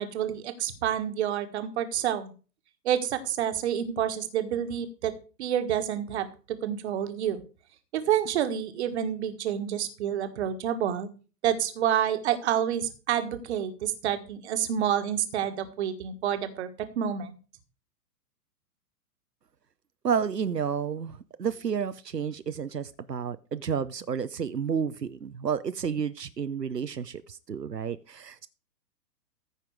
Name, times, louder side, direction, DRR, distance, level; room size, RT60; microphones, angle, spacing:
voice 1, 0.0-2.3 2.8-5.1 5.4-7.4 7.9-11.1 11.4-16.7 16.9-17.3, right 10 dB, 45° right, 10 dB, 1.5 m, -28 dB
voice 2, 20.0-28.5, right 7 dB, 90° right, 13 dB, 0.7 m, -31 dB
14.5 x 5.8 x 4.7 m, 0.35 s
figure-of-eight pair, 110°, 47 cm